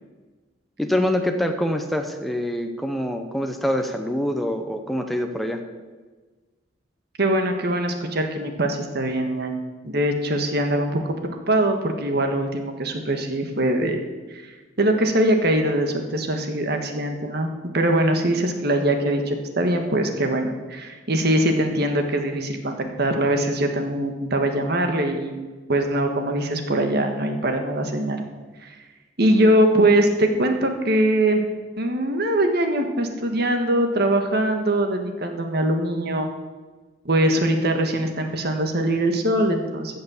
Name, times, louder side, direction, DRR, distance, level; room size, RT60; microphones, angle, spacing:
voice 1, 0.8-5.6, left 1 dB, ahead, 4 dB, 0.9 m, -25 dB
voice 2, 7.2-11.1 11.5-14.0 14.3-14.5 14.8-25.3 25.7-28.2 28.6-28.8 29.2-31.4 31.8-36.3 37.0-40.0, right 1 dB, 60° right, 5 dB, 1.6 m, -22 dB
15.0 x 6.6 x 7.2 m, 1.3 s
head